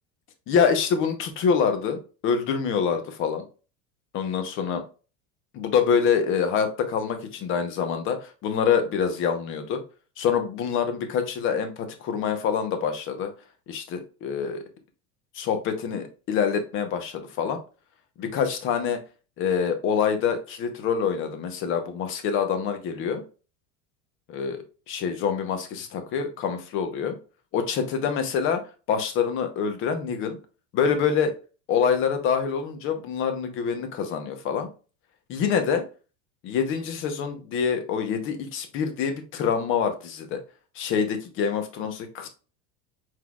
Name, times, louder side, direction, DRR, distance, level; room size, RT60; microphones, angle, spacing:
voice 1, 0.5-3.4 4.1-4.8 5.5-9.8 10.2-13.3 13.7-14.6 15.3-17.6 18.2-19.0 19.4-23.2 24.3-24.6 24.9-27.2 27.5-28.6 28.9-30.4 30.7-31.3 31.7-34.7 35.3-35.8 36.4-40.4 40.8-42.3, left 6 dB, 35° left, 7 dB, 0.8 m, -26 dB
4.6 x 3.9 x 2.3 m, 0.35 s
supercardioid pair, 150°, 34 cm